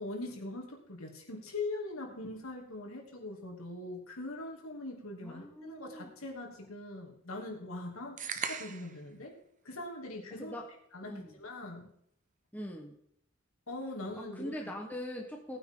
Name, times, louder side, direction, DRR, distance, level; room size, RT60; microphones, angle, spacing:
voice 1, 0.0-9.3 9.6-10.6 10.9-11.9 13.7-14.5, left 2 dB, 85° left, 0 dB, 2.9 m, -42 dB
voice 2, 5.2-6.1 10.4-10.7 11.0-11.3 12.5-13.0 14.2-15.6, equal, 10° left, 1 dB, 1.2 m, -42 dB
sound 1, 8.2-9.0, right 6 dB, 40° right, 0.9 m, -37 dB
18.5 x 9.2 x 3.9 m, 0.71 s
head